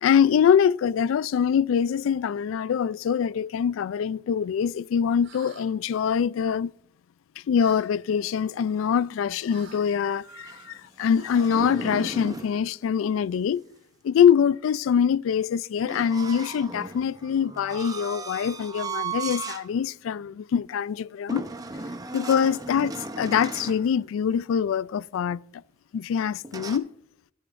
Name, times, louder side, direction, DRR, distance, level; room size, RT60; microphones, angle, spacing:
voice 1, 0.0-6.7 7.5-13.6 14.0-21.5 22.1-25.4 25.9-26.9, left 7 dB, 90° left, 0.3 m, -24 dB
sound 1, 5.2-5.7 7.6-7.9 9.5-9.8 11.8-12.3, right 3 dB, 85° right, 2.8 m, -45 dB
sound 2, 10.2-12.6 15.8-19.7 20.1-20.3 21.3-23.9 26.4-26.8, right 4 dB, 20° right, 0.7 m, -36 dB
13.0 x 10.5 x 2.5 m
head